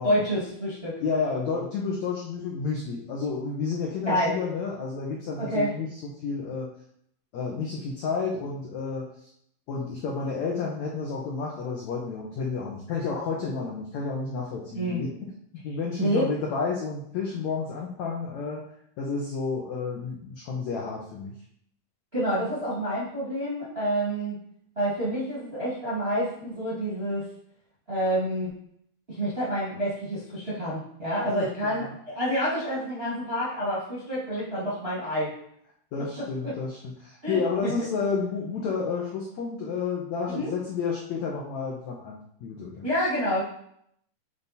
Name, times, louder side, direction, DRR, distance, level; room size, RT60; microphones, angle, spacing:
voice 1, 0.0-1.0 4.0-4.4 5.4-5.7 14.7-15.0 16.0-16.3 22.1-24.4 24.7-27.3 27.9-28.5 29.1-35.3 36.4-36.5 37.2-37.7 40.3-40.5 42.8-43.4, equal, 35° right, -8 dB, 1.0 m, -28 dB
voice 2, 1.0-6.7 7.3-9.3 9.7-15.1 15.6-18.6 19.0-21.3 31.6-32.0 35.9-42.9, left 5 dB, 80° left, -3 dB, 1.6 m, -31 dB
8.6 x 3.5 x 4.2 m, 0.70 s
omnidirectional pair, 4.7 m